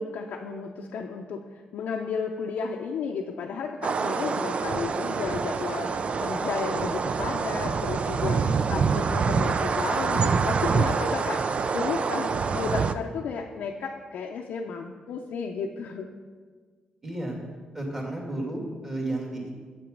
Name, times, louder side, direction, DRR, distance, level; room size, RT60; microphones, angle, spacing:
voice 1, 0.0-16.1, left 5 dB, 80° left, 1 dB, 0.6 m, -33 dB
sound 1, 3.8-12.9, right 5 dB, 45° right, 0.4 m, -26 dB
voice 2, 8.4-8.9 17.0-17.4 17.7-19.5, right 1 dB, 20° right, -2 dB, 2.4 m, -33 dB
7.6 x 6.9 x 5.2 m, 1.5 s
cardioid pair, 95°, 3 cm